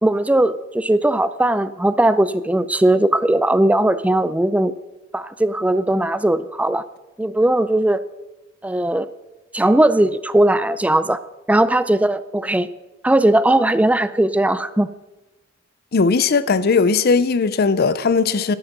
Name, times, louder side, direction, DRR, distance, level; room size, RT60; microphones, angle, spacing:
voice 1, 0.0-4.7 5.1-6.8 7.2-8.0 8.6-9.1 9.5-11.2 11.5-12.7 13.0-14.9, right 1 dB, 5° right, 0.4 m, -18 dB
voice 2, 15.9-18.5, left 4 dB, 50° left, 0.5 m, -18 dB
11.0 x 9.1 x 6.0 m
head